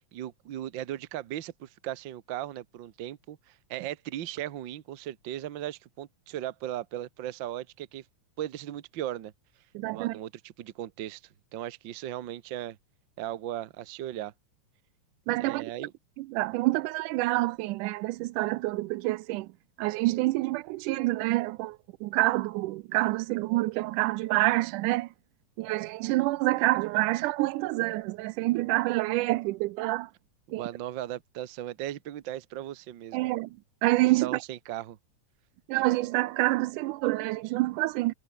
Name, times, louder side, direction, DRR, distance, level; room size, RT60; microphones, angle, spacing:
voice 1, 0.1-8.0 8.4-9.3 9.9-11.2 11.5-12.8 13.2-14.3 15.4-15.9 30.5-33.2 34.2-35.0, right 12 dB, 60° right, 1.2 m, -37 dB
voice 2, 9.7-10.2 15.3-15.7 16.2-19.5 19.8-25.1 25.6-30.1 30.5-30.7 33.1-33.6 33.8-34.4 35.7-38.1, right 19 dB, 85° right, 2.2 m, -27 dB
omnidirectional pair, 3.5 m